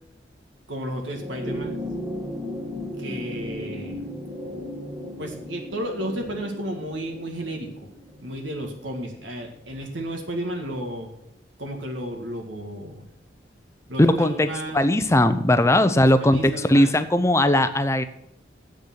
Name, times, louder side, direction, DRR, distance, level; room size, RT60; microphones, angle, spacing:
voice 1, 0.7-1.8 3.0-4.1 5.2-7.7 8.2-11.1 11.6-13.0 13.9-14.8 15.6-16.9, right 1 dB, 85° right, 2 dB, 1.9 m, -33 dB
sound 1, 1.1-9.8 11.0-11.1, equal, 25° right, 2.9 m, -36 dB
voice 2, 14.0-14.5 14.7-18.1, left 1 dB, 15° left, 11 dB, 0.6 m, -19 dB
8.1 x 6.8 x 7.8 m, 0.79 s
head